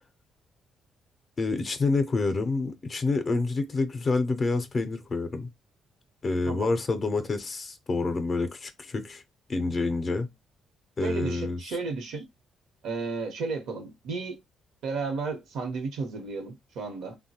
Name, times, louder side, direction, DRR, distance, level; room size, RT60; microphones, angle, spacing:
voice 1, 1.4-5.5 6.2-9.2 9.5-10.3 11.0-11.8, left 3 dB, 40° left, 0.5 m, -28 dB
voice 2, 11.0-12.2 12.8-14.4 14.8-17.2, right 4 dB, 85° right, 0.9 m, -33 dB
3.1 x 2.1 x 2.8 m
cardioid pair, 90°, 0 cm